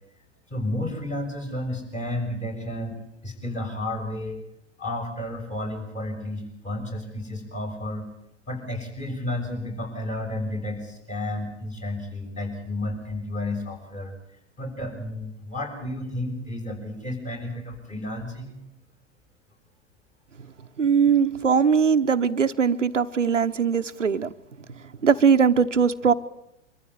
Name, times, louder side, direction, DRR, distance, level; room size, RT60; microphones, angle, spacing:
voice 1, 0.5-3.0 3.2-4.4 4.8-8.1 8.5-14.1 14.6-18.5 21.2-21.4, left 1 dB, 20° left, 2 dB, 6.6 m, -32 dB
voice 2, 20.8-24.3 25.0-26.1, right 6 dB, 90° right, 9 dB, 1.0 m, -20 dB
24.5 x 14.5 x 9.6 m, 0.86 s
figure-of-eight pair, 95°, 36 cm